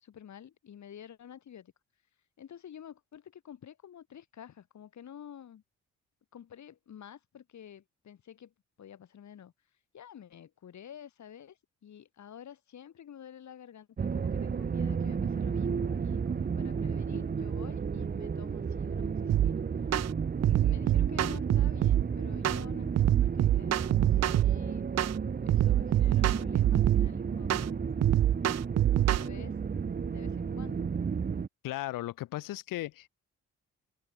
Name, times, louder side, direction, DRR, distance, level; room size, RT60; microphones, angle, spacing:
voice 1, 0.0-1.7 2.4-5.6 6.3-8.5 8.8-9.5 9.9-19.7 20.4-24.9 25.4-27.9 28.9-29.6 30.1-30.9, left 9 dB, 60° left, 2.3 m, -50 dB
sound 1, 14.0-31.5, right 6 dB, 30° right, 0.8 m, -33 dB
sound 2, 19.3-19.5 19.9-20.1 20.4-22.0 22.4-22.6 23.0-24.6 25.0-25.2 25.5-27.1 27.5-27.7 28.0-29.3, right 12 dB, 55° right, 0.6 m, -25 dB
voice 2, 31.6-33.1, left 16 dB, 85° left, 2.1 m, -36 dB
supercardioid pair, 60°, 32 cm